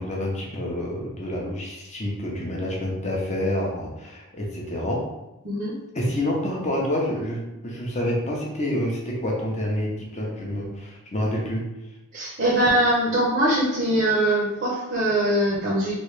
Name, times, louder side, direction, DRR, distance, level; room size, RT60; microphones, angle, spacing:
voice 1, 0.0-5.0 5.9-11.6, left 1 dB, 30° left, -2 dB, 0.7 m, -28 dB
voice 2, 5.4-5.8 12.1-15.9, right 1 dB, 45° right, -6 dB, 0.8 m, -22 dB
3.1 x 2.7 x 3.2 m, 0.96 s
head